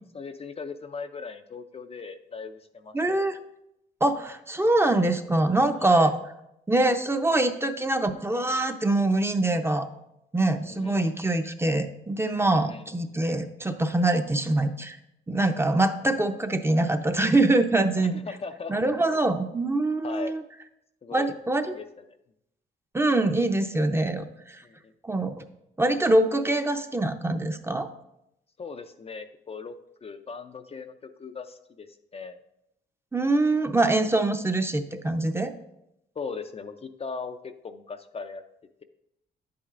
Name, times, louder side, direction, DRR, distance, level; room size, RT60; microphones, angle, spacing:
voice 1, 0.1-3.3 5.8-6.1 10.6-11.2 12.5-13.1 18.0-18.7 20.0-20.3 21.0-21.3 21.6-21.9 24.6-24.9 28.6-32.4 34.0-34.1 36.2-38.4, left 4 dB, 30° left, 6 dB, 0.4 m, -39 dB
voice 2, 2.9-3.4 4.0-6.1 6.7-9.9 10.3-15.0 15.3-18.2 18.7-20.4 21.1-21.7 22.9-24.6 25.0-25.4 25.8-27.9 33.1-35.5, right 2 dB, 10° right, 7 dB, 0.6 m, -24 dB
9.7 x 8.6 x 2.5 m, 0.82 s
cardioid pair, 90°, 20 cm